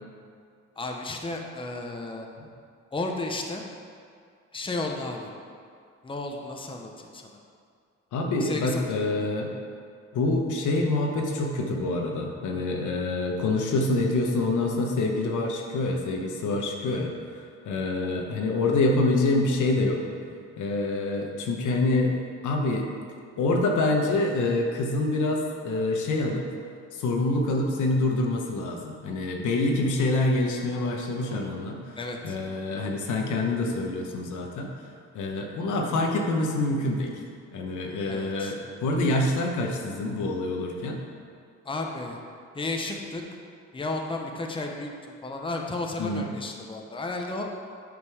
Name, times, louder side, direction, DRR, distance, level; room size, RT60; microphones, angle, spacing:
voice 1, 0.8-2.3 2.9-3.6 4.5-5.3 6.0-7.3 8.4-9.3 32.0-32.4 38.1-38.5 41.6-42.2 42.5-43.2 43.7-47.5, left 2 dB, 15° left, 2 dB, 0.9 m, -33 dB
voice 2, 8.1-9.5 10.1-20.1 20.6-22.2 22.4-22.9 23.4-26.5 26.9-32.0 32.2-34.7 35.1-37.2 37.5-41.0 46.0-46.3, left 2 dB, 80° left, 1 dB, 1.1 m, -26 dB
8.3 x 5.2 x 4.9 m, 2.2 s
cardioid pair, 90°, 30 cm